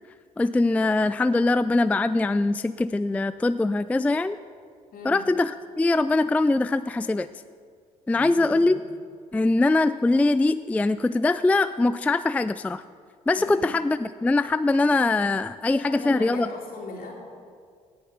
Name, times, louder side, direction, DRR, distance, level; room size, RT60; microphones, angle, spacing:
voice 1, 0.4-4.4 5.0-7.3 8.1-8.8 9.3-12.8 13.3-16.5, left 2 dB, 10° left, 13 dB, 0.3 m, -22 dB
voice 2, 4.9-5.2 8.1-8.7 13.4-13.7 15.7-17.1, left 2 dB, 55° left, -1 dB, 3.3 m, -38 dB
17.5 x 6.6 x 5.8 m, 2.1 s
hypercardioid pair, 50°, 17 cm